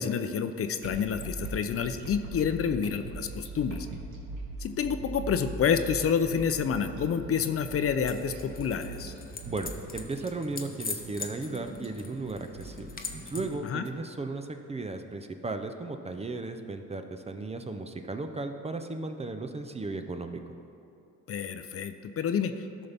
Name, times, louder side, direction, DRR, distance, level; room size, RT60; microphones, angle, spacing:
voice 1, 0.0-3.9 4.6-9.1 13.6-13.8 21.3-22.9, left 7 dB, 50° left, 9 dB, 0.5 m, -29 dB
sound 1, 0.8-13.9, right 2 dB, 75° right, 1.6 m, -41 dB
sound 2, 8.1-13.6, left 4 dB, 30° left, 0.9 m, -42 dB
voice 2, 9.5-12.9 13.3-20.4, right 3 dB, 20° right, 6 dB, 0.5 m, -35 dB
13.5 x 5.6 x 3.5 m, 2.8 s
cardioid pair, 90°, 30 cm